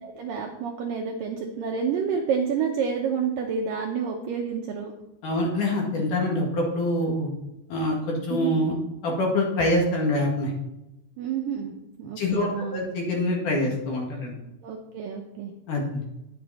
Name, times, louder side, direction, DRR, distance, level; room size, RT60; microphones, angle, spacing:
voice 1, 0.0-4.9 8.3-8.7 11.2-12.9 14.6-15.5, right 6 dB, 75° right, 1 dB, 2.1 m, -29 dB
voice 2, 5.2-7.3 7.7-8.8 9.0-10.5 12.2-14.3 15.7-16.0, left 1 dB, 55° left, -1 dB, 3.1 m, -25 dB
10.5 x 7.8 x 4.2 m, 0.90 s
omnidirectional pair, 4.9 m